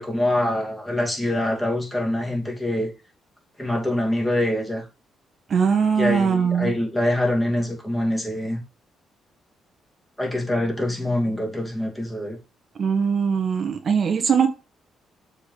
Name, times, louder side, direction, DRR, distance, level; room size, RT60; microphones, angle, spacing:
voice 1, 0.0-2.9 3.6-4.9 6.0-8.6 10.2-12.4, left 1 dB, 10° left, 2.6 m, -24 dB
voice 2, 5.5-6.7 12.8-14.5, right 6 dB, 50° right, 1.3 m, -21 dB
6.9 x 4.7 x 4.0 m
cardioid pair, 90°, 0 cm